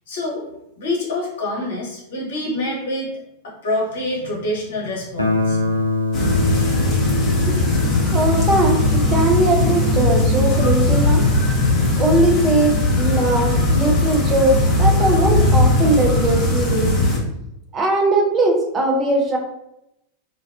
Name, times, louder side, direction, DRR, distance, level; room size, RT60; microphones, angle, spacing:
voice 1, 0.1-0.5 0.8-3.1 3.4-5.8, left 1 dB, 60° left, -2 dB, 0.8 m, -26 dB
Guitar, 5.2-11.9, left 3 dB, 85° left, 0.3 m, -26 dB
sound 1, 6.1-17.2, left 1 dB, 25° left, 0.8 m, -18 dB
voice 2, 8.1-11.2 12.0-16.9 17.7-19.4, right 2 dB, 20° right, 0 dB, 0.5 m, -20 dB
2.6 x 2.2 x 2.2 m, 0.82 s
figure-of-eight pair, 90°, 0 cm